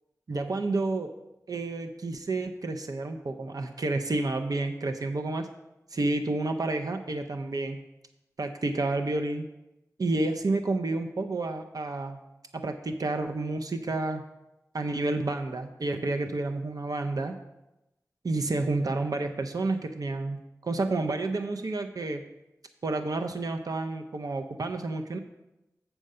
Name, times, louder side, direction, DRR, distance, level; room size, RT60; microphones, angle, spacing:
voice 1, 0.3-1.1 1.5-5.5 6.0-7.8 8.4-9.5 10.0-12.2 12.5-14.2 14.7-17.3 18.2-22.2 22.8-25.2, right 2 dB, 75° right, 6 dB, 0.6 m, -30 dB
7.5 x 4.5 x 6.6 m, 0.93 s
cardioid pair, 40°, 6 cm